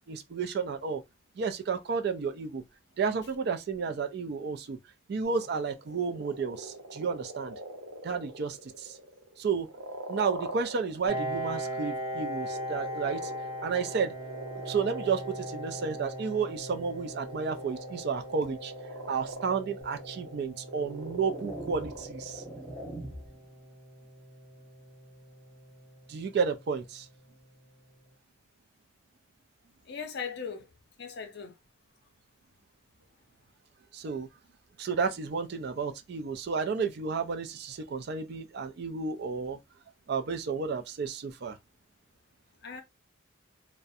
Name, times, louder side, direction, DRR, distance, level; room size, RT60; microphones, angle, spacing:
voice 1, 0.1-1.0 1.4-2.6 3.0-4.8 5.1-7.5 8.0-9.0 9.4-9.7 10.1-13.3 13.6-14.1 14.7-18.7 19.1-22.4 26.1-27.1 33.9-34.3 34.8-39.6 40.1-41.6, right 5 dB, 50° right, 0.3 m, -32 dB
sound 1, 5.3-11.3 11.9-23.2, right 2 dB, 80° right, 0.7 m, -44 dB
Piano, 11.1-26.4, equal, 25° right, 0.7 m, -40 dB
sound 2, 19.8-20.0 20.7-23.5, right 1 dB, 10° left, 0.6 m, -43 dB
voice 2, 29.9-30.7 31.0-31.5 42.6-42.8, left 6 dB, 55° left, 0.5 m, -38 dB
2.4 x 2.1 x 2.6 m
head